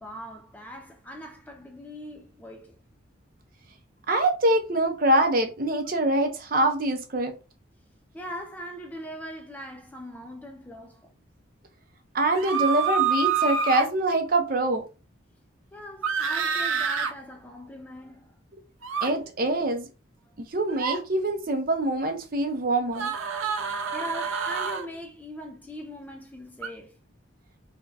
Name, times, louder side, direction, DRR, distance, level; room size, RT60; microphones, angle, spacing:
voice 1, 0.0-2.8 8.1-11.1 15.7-18.3 23.9-26.9, equal, 10° left, 0.4 m, -40 dB
voice 2, 4.1-7.3 12.1-14.8 19.0-19.9 20.4-23.1, right 1 dB, 45° right, 0.7 m, -24 dB
sound 1, 12.3-13.9 16.0-17.1 18.8-19.1 20.7-21.0 22.9-24.9 26.6-26.7, right 5 dB, 90° right, 0.6 m, -27 dB
3.5 x 2.3 x 3.9 m
head